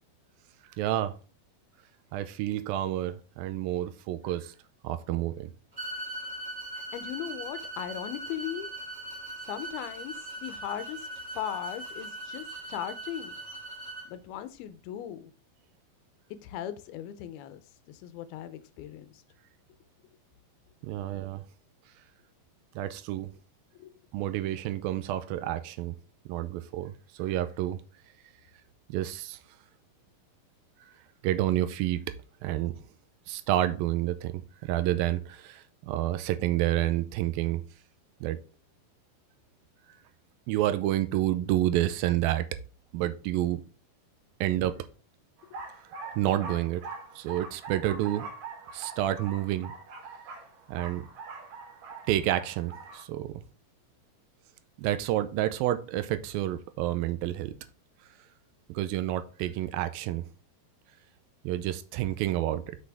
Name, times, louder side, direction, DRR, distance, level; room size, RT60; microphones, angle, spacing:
voice 1, 0.8-1.2 2.1-4.6 4.8-5.5 20.8-21.4 22.8-23.3 24.1-26.0 26.3-27.8 28.9-29.4 31.2-32.1 32.4-32.8 33.3-37.6 38.2-38.4 40.5-42.5 42.9-43.6 44.4-44.9 46.2-46.8 47.2-48.3 48.7-49.8 50.7-51.1 52.1-53.4 54.8-57.6 58.7-60.3 61.4-62.8, right 13 dB, 80° right, 2.3 m, -29 dB
sound 1, 5.8-14.1, right 1 dB, 20° right, 2.0 m, -40 dB
voice 2, 6.8-8.7 9.4-11.1 11.4-13.4 14.1-15.3 16.4-17.6 17.9-19.2 23.7-23.9, left 11 dB, 85° left, 2.6 m, -38 dB
sound 2, 45.4-53.0, right 4 dB, 65° right, 2.8 m, -43 dB
6.4 x 6.1 x 3.4 m
omnidirectional pair, 4.4 m